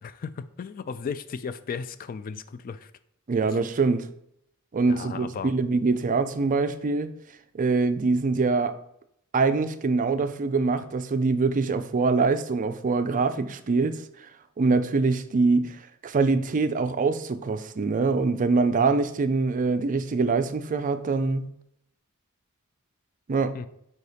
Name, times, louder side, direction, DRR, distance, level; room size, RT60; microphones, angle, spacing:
voice 1, 0.0-2.9 4.9-5.5 23.5-23.7, left 6 dB, 40° left, 0.3 m, -35 dB
voice 2, 3.3-4.1 4.7-7.1 7.5-8.7 9.3-14.0 14.6-15.8 16.0-21.5 23.3-23.6, right 4 dB, 35° right, 0.4 m, -24 dB
4.7 x 4.1 x 4.9 m
head